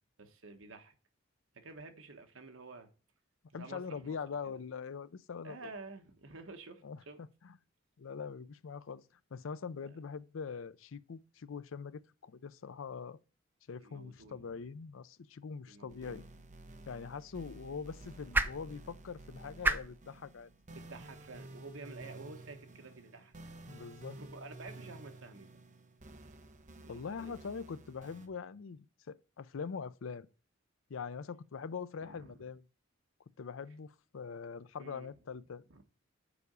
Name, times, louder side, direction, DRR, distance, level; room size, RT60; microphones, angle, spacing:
voice 1, 0.2-0.9 1.5-2.9 3.5-4.2 4.4-4.6 5.4-7.2 13.8-14.7 15.7-16.3 20.7-23.3 23.8-25.6 26.8-27.3 32.0-32.4 34.8-35.1 35.7-35.8, right 3 dB, 75° right, 1.2 m, -50 dB
voice 2, 3.5-5.7 6.8-7.0 7.4-7.5 8.0-9.0 9.3-13.2 13.7-16.3 16.9-20.5 23.7-24.2 26.9-30.3 30.9-32.6 33.4-35.6, left 5 dB, 70° left, 0.5 m, -43 dB
sound 1, 15.9-28.3, right 2 dB, 40° right, 0.9 m, -52 dB
sound 2, 16.5-22.8, right 2 dB, 10° right, 0.5 m, -39 dB
6.9 x 4.9 x 6.7 m
head